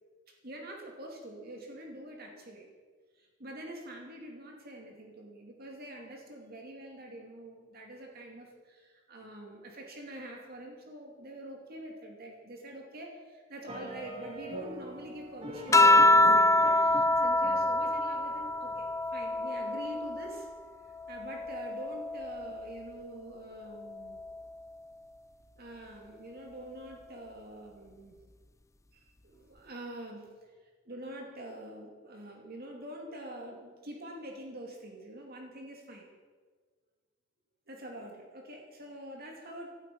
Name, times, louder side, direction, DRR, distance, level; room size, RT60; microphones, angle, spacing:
voice 1, 0.4-2.7 3.2-18.9 19.1-20.5 21.1-24.2 25.6-28.2 28.9-30.3 30.8-36.1 37.7-39.7, right 1 dB, 50° right, 1 dB, 2.4 m, -45 dB
sound 1, 13.7-18.9, equal, 30° right, 2.6 m, -43 dB
sound 2, 15.7-20.5 21.0-22.7 23.9-24.4, left 2 dB, 15° left, 0.5 m, -25 dB
18.0 x 12.0 x 5.5 m, 1.5 s
head